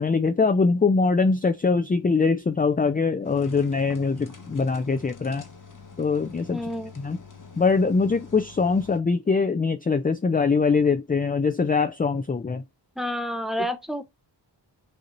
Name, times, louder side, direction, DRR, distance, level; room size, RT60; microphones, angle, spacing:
voice 1, 0.0-5.5 6.0-6.6 7.0-7.2 7.6-12.6, left 4 dB, 20° left, 0.4 m, -22 dB
sound 1, 3.2-9.0, left 5 dB, 45° left, 1.1 m, -46 dB
voice 2, 6.5-6.9 13.0-14.0, equal, ahead, 0.8 m, -29 dB
6.6 x 2.9 x 2.6 m
cardioid pair, 45°, 45 cm